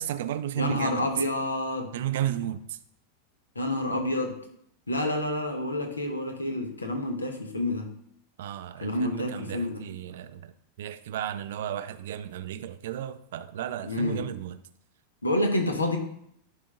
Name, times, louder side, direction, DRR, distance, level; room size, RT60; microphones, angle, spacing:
voice 1, 0.0-1.1 1.9-2.8 8.4-10.5 10.8-14.6, right 11 dB, 55° right, 12 dB, 0.5 m, -33 dB
voice 2, 0.5-1.9 3.5-4.4 4.9-7.9 8.8-9.8 13.8-14.2 15.2-16.0, left 1 dB, 80° left, 4 dB, 1.2 m, -28 dB
10.5 x 3.8 x 3.7 m, 0.69 s
figure-of-eight pair, 90°, 0 cm